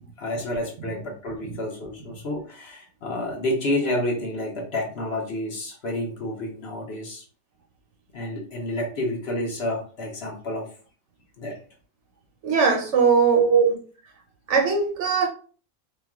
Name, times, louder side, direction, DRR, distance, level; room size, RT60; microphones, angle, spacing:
voice 1, 0.2-7.2 8.1-10.7 11.4-11.6 13.3-13.7, right 1 dB, 55° left, 0.9 m, -28 dB
voice 2, 12.4-13.4 14.5-15.3, right 5 dB, 65° right, 0.8 m, -20 dB
4.3 x 2.2 x 2.3 m
omnidirectional pair, 1.5 m